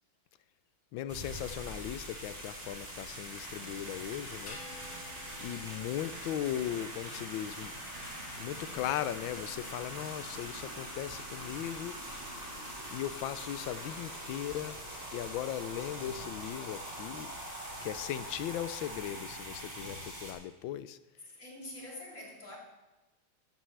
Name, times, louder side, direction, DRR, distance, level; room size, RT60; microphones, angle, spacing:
voice 1, 0.9-4.6 5.4-7.9 8.4-12.0 12.9-14.8 15.1-17.3 17.8-21.0, left 11 dB, 75° left, 1.3 m, -38 dB
sound 1, 1.1-20.3, right 1 dB, 25° right, 3.6 m, -43 dB
sound 2, 4.5-7.0, left 3 dB, 60° left, 2.4 m, -51 dB
voice 2, 21.4-22.6, left 1 dB, 35° left, 3.4 m, -45 dB
14.5 x 13.5 x 3.3 m
omnidirectional pair, 2.3 m